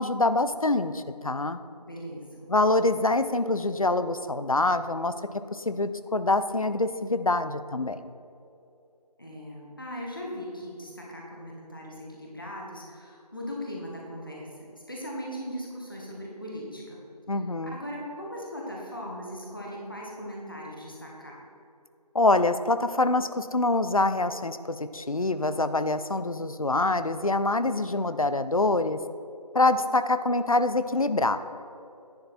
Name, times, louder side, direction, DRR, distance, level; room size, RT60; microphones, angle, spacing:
voice 1, 0.0-1.6 2.5-5.1 5.5-8.1 17.3-17.8 22.1-29.0 29.5-31.4, left 2 dB, 55° left, 12 dB, 0.5 m, -25 dB
voice 2, 1.8-2.5 9.2-17.0 17.6-21.4, equal, 30° left, -3 dB, 1.3 m, -39 dB
10.5 x 6.7 x 4.3 m, 2.7 s
figure-of-eight pair, 180°, 21 cm